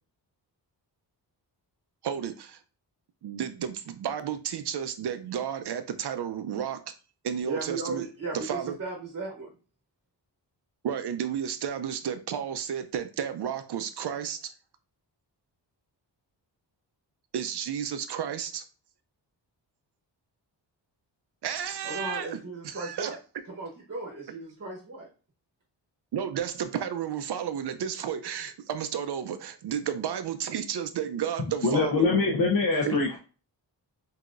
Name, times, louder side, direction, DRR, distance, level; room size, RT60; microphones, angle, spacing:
voice 1, 2.0-2.6 3.2-6.9 7.2-8.1 8.3-8.8 10.8-14.5 17.3-18.6 21.4-22.4 22.6-23.2 26.1-32.1 32.9-33.0, right 8 dB, 65° right, 0.5 m, -32 dB
voice 2, 7.4-9.5 21.8-23.2 23.5-25.1, right 3 dB, 35° right, 1.0 m, -36 dB
voice 3, 31.6-33.2, left 3 dB, 50° left, 0.8 m, -23 dB
5.8 x 2.8 x 2.4 m
wide cardioid pair, 115°, 43 cm